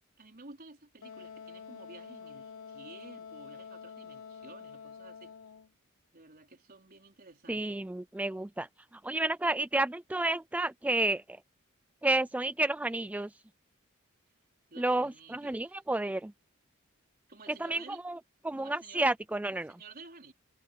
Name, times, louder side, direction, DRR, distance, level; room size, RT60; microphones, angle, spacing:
voice 1, 0.2-5.3 6.1-7.8 14.7-15.8 17.3-18.0 18.6-19.1 19.5-20.3, right 3 dB, 45° right, 4.3 m, -53 dB
Wind instrument woodwind instrument, 1.0-5.7, left 6 dB, 80° left, 0.9 m, -47 dB
voice 2, 7.5-8.7 9.0-11.2 12.0-13.3 14.8-16.3 17.6-18.2 18.4-19.7, right 2 dB, 5° right, 0.3 m, -30 dB
head